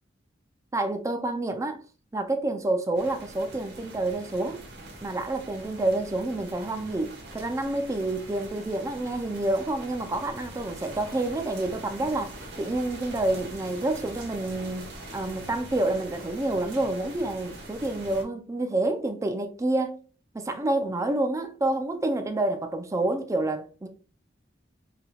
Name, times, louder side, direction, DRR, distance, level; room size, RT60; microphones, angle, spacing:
voice 1, 0.7-1.8 2.1-4.6 5.0-20.0 20.3-23.9, right 2 dB, 15° right, 0.4 m, -28 dB
sound 1, 2.9-18.2, right 1 dB, 60° right, 1.3 m, -43 dB
4.7 x 3.4 x 2.2 m
head